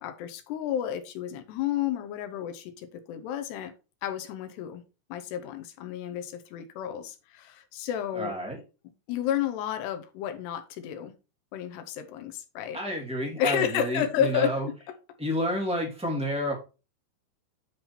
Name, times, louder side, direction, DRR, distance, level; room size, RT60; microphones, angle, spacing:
voice 1, 0.0-3.7 4.0-4.8 5.1-8.3 9.1-11.1 11.5-12.8 13.4-14.7, left 9 dB, 80° left, 9 dB, 3.0 m, -31 dB
voice 2, 8.1-8.6 12.7-14.7 15.2-16.6, equal, ahead, -2 dB, 1.4 m, -30 dB
9.8 x 3.9 x 4.4 m, 0.31 s
omnidirectional pair, 4.8 m